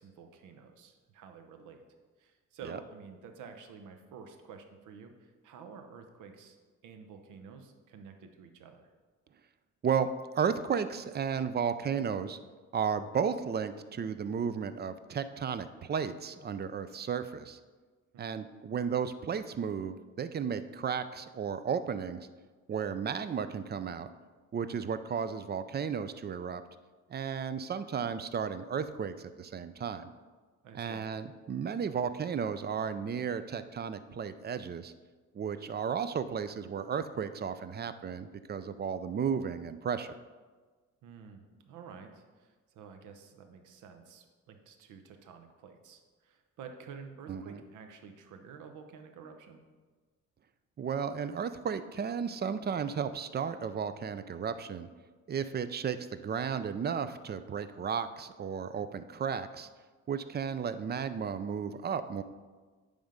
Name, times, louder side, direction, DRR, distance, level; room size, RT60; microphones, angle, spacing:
voice 1, 0.0-1.8 2.2-6.6 6.8-8.9 18.1-18.4 30.6-31.1 41.0-49.6, right 6 dB, 85° right, 6 dB, 0.9 m, -50 dB
voice 2, 10.3-12.4 12.7-17.6 18.2-22.3 22.7-24.1 24.5-26.6 27.1-30.1 30.7-34.9 35.3-40.2 47.3-47.6 50.8-54.9 55.3-59.7 60.1-62.2, right 7 dB, 35° right, 12 dB, 0.5 m, -34 dB
9.2 x 3.6 x 5.1 m, 1.4 s
cardioid pair, 90°, 30 cm